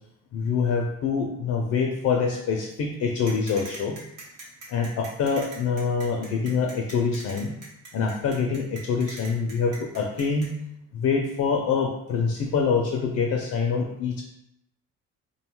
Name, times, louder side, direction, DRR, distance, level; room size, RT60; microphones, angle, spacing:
voice 1, 0.3-4.0 4.7-7.5 7.9-10.6 10.9-14.2, left 5 dB, 65° left, 2 dB, 0.4 m, -25 dB
sound 1, 3.3-10.5, right 2 dB, 70° right, 0.9 m, -42 dB
2.6 x 2.2 x 2.9 m, 0.80 s
cardioid pair, 90°, 30 cm